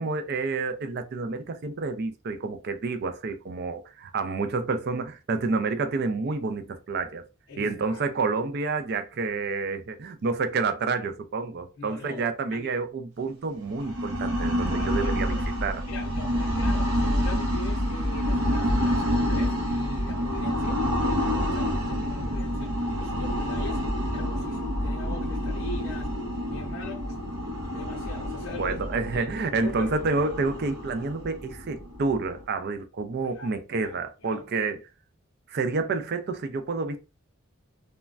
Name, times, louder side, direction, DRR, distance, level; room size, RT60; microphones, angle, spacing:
voice 1, 0.0-7.2 7.6-15.8 28.6-34.8 35.5-37.0, right 4 dB, 50° right, 0.4 m, -29 dB
voice 2, 7.5-8.0 11.8-12.2 12.5-12.7 14.7-15.5 15.9-23.8 24.1-26.1 26.5-27.2 27.7-29.9 33.2-34.4, left 3 dB, 65° left, 0.5 m, -42 dB
sound 1, 13.7-32.4, equal, 90° right, 0.8 m, -28 dB
3.1 x 2.1 x 2.4 m
head